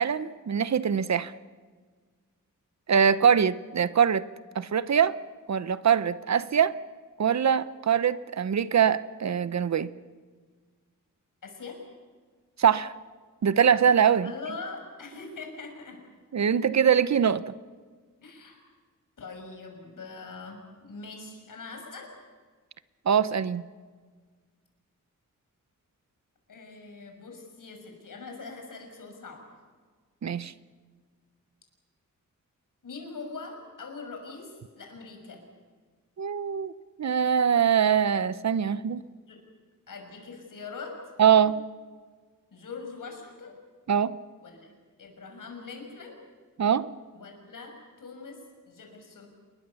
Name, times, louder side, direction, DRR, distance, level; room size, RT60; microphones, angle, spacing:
voice 1, 0.0-1.3 2.9-4.3 4.5-5.2 5.5-6.8 7.2-9.9 12.6-12.9 13.4-14.3 16.3-17.5 23.1-23.6 30.2-30.5 36.2-36.7 37.0-39.0 41.2-41.6 43.9-44.1 46.6-46.9, right 8 dB, 55° right, 16 dB, 0.8 m, -23 dB
voice 2, 11.4-11.8 14.2-16.0 18.2-18.6 19.2-22.1 26.5-29.4 32.8-35.4 38.8-39.4 39.9-41.0 42.5-43.6 44.4-44.7 45.0-46.2 47.1-48.4 48.7-49.3, left 4 dB, 70° left, 3 dB, 6.3 m, -42 dB
28.0 x 21.5 x 7.0 m, 1.5 s
wide cardioid pair, 145°, 33 cm